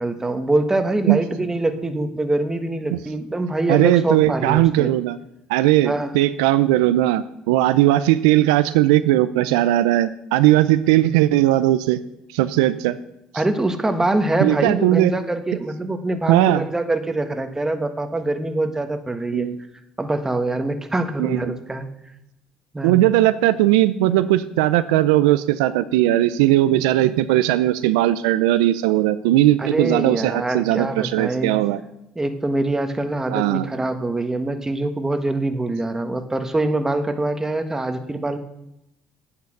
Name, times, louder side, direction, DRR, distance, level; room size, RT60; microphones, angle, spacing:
voice 1, 0.0-4.9 5.8-6.1 13.3-19.5 20.0-21.9 22.7-23.1 29.6-31.6 32.1-38.4, right 2 dB, 15° right, 7 dB, 1.4 m, -24 dB
voice 2, 3.7-5.2 5.5-12.0 12.3-13.0 14.4-15.1 16.3-16.6 19.3-19.6 21.2-21.5 22.8-31.8 33.3-33.7, right 14 dB, 85° right, 12 dB, 0.4 m, -18 dB
9.5 x 8.2 x 6.5 m, 0.85 s
supercardioid pair, 70°, 3 cm